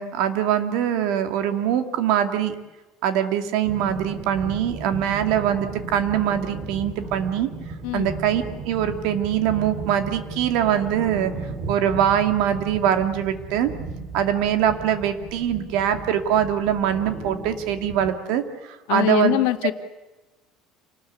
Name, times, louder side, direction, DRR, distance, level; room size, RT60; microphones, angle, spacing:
voice 1, 0.0-2.5 3.0-7.5 7.9-11.3 11.7-13.7 14.1-19.3, right 10 dB, 65° right, 7 dB, 2.5 m, -23 dB
sound 1, 3.6-18.1, right 3 dB, 35° right, 3.5 m, -35 dB
voice 2, 18.9-19.7, left 15 dB, 75° left, 7 dB, 2.1 m, -22 dB
28.0 x 19.5 x 8.4 m, 1.1 s
cardioid pair, 175°, 0 cm